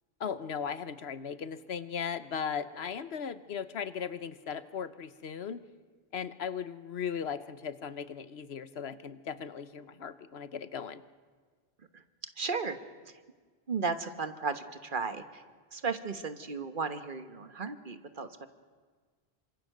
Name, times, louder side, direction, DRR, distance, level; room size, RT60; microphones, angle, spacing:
voice 1, 0.2-5.6 6.1-11.0, left 7 dB, 80° left, 13 dB, 1.2 m, -37 dB
voice 2, 12.4-12.8 13.7-15.4 15.7-18.5, right 4 dB, 55° right, 9 dB, 1.4 m, -35 dB
27.5 x 25.5 x 6.7 m, 1.5 s
omnidirectional pair, 1.0 m